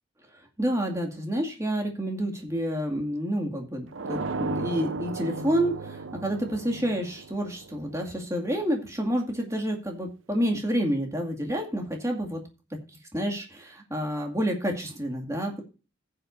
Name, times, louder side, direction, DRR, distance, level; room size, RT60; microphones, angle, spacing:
voice 1, 0.6-12.4 13.1-15.6, equal, 15° right, 2 dB, 2.2 m, -29 dB
sound 1, 3.9-8.6, right 3 dB, 85° right, 0.8 m, -35 dB
16.0 x 7.6 x 2.7 m, 0.33 s
head